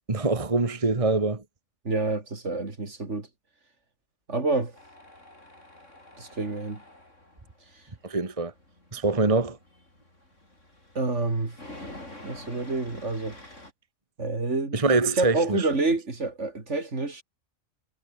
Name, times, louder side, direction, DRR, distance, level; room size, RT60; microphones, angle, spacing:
voice 1, 0.1-1.4 8.0-8.5 8.9-9.6 14.7-15.7, right 3 dB, 25° right, 1.7 m, -24 dB
voice 2, 1.9-3.3 4.3-4.8 6.2-6.8 11.0-11.6 12.2-13.4 14.2-14.8 15.1-17.2, right 3 dB, 65° right, 3.7 m, -28 dB
Tools, 4.8-13.7, left 1 dB, 75° left, 8.4 m, -48 dB
omnidirectional pair, 1.3 m